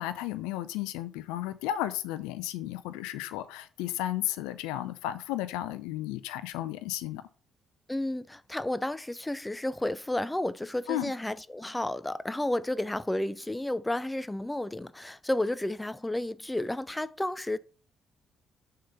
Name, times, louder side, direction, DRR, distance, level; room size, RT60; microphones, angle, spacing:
voice 1, 0.0-7.2 10.9-11.1, left 13 dB, 75° left, 0.5 m, -33 dB
voice 2, 7.9-17.6, left 1 dB, 10° left, 0.5 m, -32 dB
6.6 x 3.8 x 5.4 m
hypercardioid pair, 50°, 0 cm